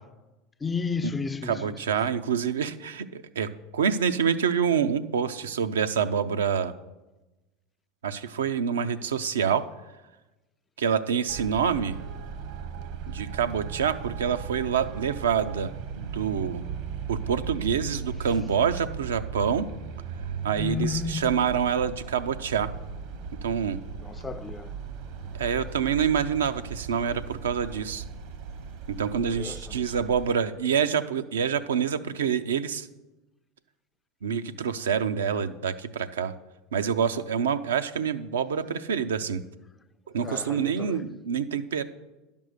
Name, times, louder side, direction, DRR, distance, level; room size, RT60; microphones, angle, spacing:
voice 1, 0.6-1.8 20.6-21.4 24.0-24.7 25.2-25.3 29.4-29.8 40.2-41.0, left 5 dB, 20° left, 0.4 m, -32 dB
voice 2, 1.5-6.7 8.0-9.6 10.8-12.0 13.1-16.7 17.1-19.7 20.4-22.7 23.4-23.8 25.3-28.0 28.9-32.9 34.2-36.3 36.7-39.4 40.1-41.8, right 7 dB, 85° right, 0.5 m, -27 dB
Traffic noise roadway noise, 11.3-30.3, right 6 dB, 60° right, 1.0 m, -37 dB
10.5 x 5.3 x 6.5 m
hypercardioid pair, 85°, 0 cm